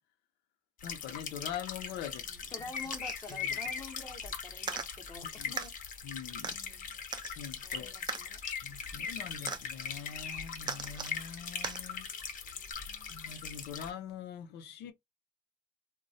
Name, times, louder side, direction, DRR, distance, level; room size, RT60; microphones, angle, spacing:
voice 1, 0.8-2.3 5.4-5.5 6.0-6.6 7.4-7.9 8.6-12.1 13.1-14.9, left 8 dB, 85° left, 0.6 m, -43 dB
sound 1, 0.8-13.9, left 6 dB, 50° left, 0.7 m, -40 dB
voice 2, 2.1-5.7 6.4-7.0 7.6-8.4 12.8-13.1, left 3 dB, 20° left, 0.7 m, -48 dB
sound 2, 2.8-3.4 4.6-4.9 5.6-5.7 6.4-6.5 7.1-7.3 8.1-8.2 9.5-9.6 10.6-11.2 11.6-11.8 12.7-12.8, right 5 dB, 25° right, 0.4 m, -38 dB
3.0 x 2.2 x 2.7 m
cardioid pair, 110°, 17 cm